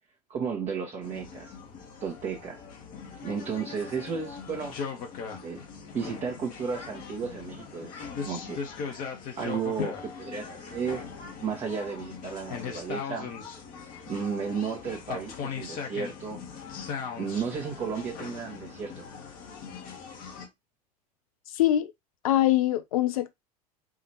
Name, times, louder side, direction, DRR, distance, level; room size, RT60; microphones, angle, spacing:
voice 1, 0.3-1.5 2.0-2.6 3.2-4.7 5.4-5.6 5.9-11.0 11.4-13.3 14.1-16.4 17.2-19.0, right 6 dB, 35° right, 1.2 m, -34 dB
sound 1, 1.0-20.5, left 6 dB, 50° left, 1.3 m, -40 dB
voice 2, 21.5-21.9 22.2-23.4, left 13 dB, 70° left, 0.4 m, -24 dB
4.9 x 2.8 x 2.9 m
figure-of-eight pair, 75°, 19 cm